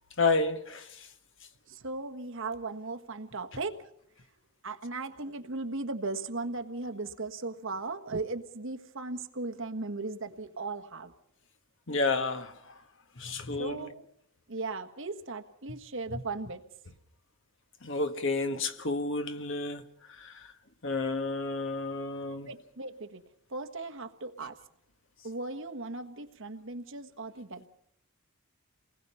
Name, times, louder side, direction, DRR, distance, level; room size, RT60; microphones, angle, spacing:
voice 1, 0.2-0.9 11.9-12.5 13.2-13.8 16.1-16.2 17.8-19.8 20.2-20.5 20.8-22.5, left 3 dB, 55° left, 1.5 m, -30 dB
voice 2, 1.7-3.9 4.6-11.1 13.6-14.0 14.5-16.6 22.5-23.2 23.5-24.6 25.2-27.7, right 3 dB, 55° right, 1.5 m, -37 dB
29.0 x 20.0 x 5.7 m
head